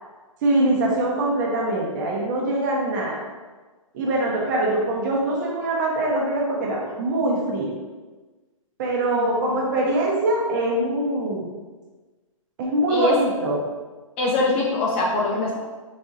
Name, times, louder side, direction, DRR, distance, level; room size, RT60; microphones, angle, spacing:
voice 1, 0.4-3.2 3.9-7.7 8.8-11.5 12.6-13.6, right 1 dB, 35° right, -2 dB, 0.9 m, -23 dB
voice 2, 9.1-9.6 12.9-13.2 14.2-15.6, left 2 dB, 20° left, -2 dB, 0.4 m, -23 dB
4.0 x 3.5 x 2.8 m, 1.3 s
figure-of-eight pair, 130°, 18 cm